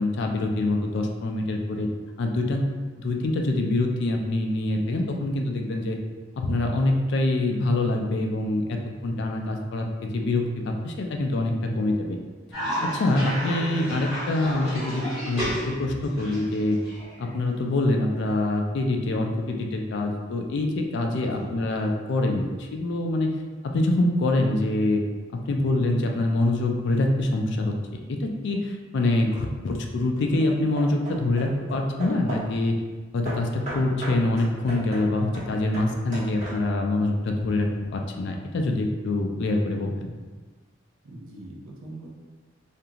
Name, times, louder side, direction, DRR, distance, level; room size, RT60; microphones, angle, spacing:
voice 1, 0.0-1.9 2.2-2.7 3.0-6.0 6.4-12.2 12.8-16.8 17.2-23.3 23.6-25.0 25.4-32.8 33.1-40.1, left 2 dB, 55° left, 2 dB, 0.3 m, -25 dB
Cough, 12.5-17.6, equal, ahead, 1.2 m, -32 dB
voice 2, 15.4-15.7 21.1-21.6 41.0-42.1, right 1 dB, 70° right, -1 dB, 0.5 m, -42 dB
Hammer / Wood, 29.0-29.5 30.2-32.6 33.2-36.9, right 1 dB, 40° right, 1.0 m, -38 dB
2.5 x 2.4 x 2.8 m, 1.3 s
head